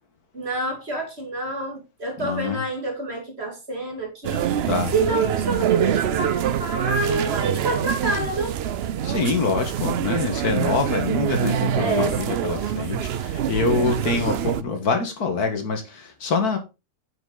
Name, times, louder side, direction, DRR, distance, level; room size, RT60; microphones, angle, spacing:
voice 1, 0.3-4.5 4.9-8.6 11.8-12.6, right 3 dB, 40° right, 2.7 m, -27 dB
voice 2, 2.2-2.6 4.7-4.9 9.0-16.6, left 4 dB, 65° left, 2.1 m, -25 dB
sound 1, 4.2-14.6, right 9 dB, 80° right, 0.5 m, -25 dB
9.1 x 5.9 x 3.8 m
omnidirectional pair, 1.7 m